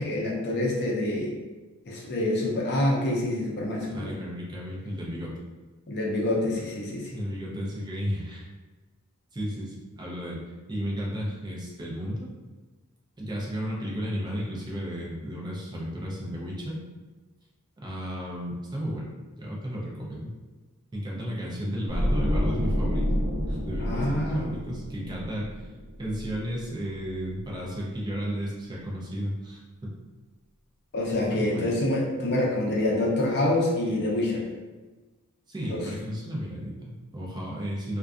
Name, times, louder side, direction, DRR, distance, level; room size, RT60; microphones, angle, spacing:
voice 1, 0.0-1.3 1.9-4.1 5.9-7.2 23.8-24.5 30.9-34.4 35.7-35.8, left 1 dB, 50° left, -3 dB, 0.5 m, -26 dB
voice 2, 3.9-5.3 7.1-8.5 9.3-10.4 10.7-12.3 13.2-16.8 17.8-19.1 19.4-20.3 20.9-23.2 23.5-25.7 26.0-30.0 31.2-31.7 35.5-38.0, equal, 20° right, -4 dB, 0.4 m, -33 dB
sound 1, 21.9-27.0 27.2-27.5, equal, 65° right, 0.6 m, -29 dB
2.5 x 2.2 x 2.4 m, 1.2 s
head